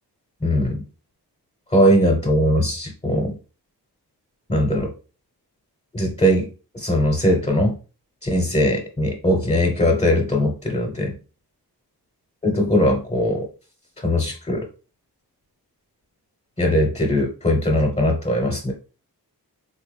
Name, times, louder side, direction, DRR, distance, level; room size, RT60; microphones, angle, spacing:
voice 1, 0.4-0.8 1.7-3.4 4.5-4.9 5.9-6.5 6.7-7.7 8.2-11.1 12.4-13.5 14.0-14.6 16.6-18.7, equal, 20° left, 1 dB, 0.9 m, -20 dB
3.4 x 2.2 x 3.2 m, 0.35 s
cardioid pair, 60°, 40 cm